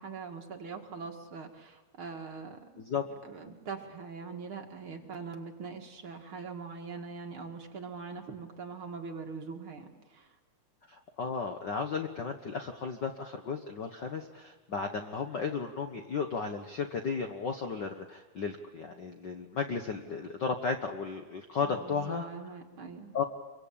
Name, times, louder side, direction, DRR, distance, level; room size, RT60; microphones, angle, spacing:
voice 1, 0.0-2.8 3.2-10.3 21.6-23.1, right 5 dB, 45° right, 3 dB, 2.6 m, -42 dB
voice 2, 10.9-22.2 23.1-23.2, left 5 dB, 55° left, 5 dB, 1.2 m, -34 dB
26.5 x 24.0 x 8.8 m, 1.2 s
omnidirectional pair, 3.4 m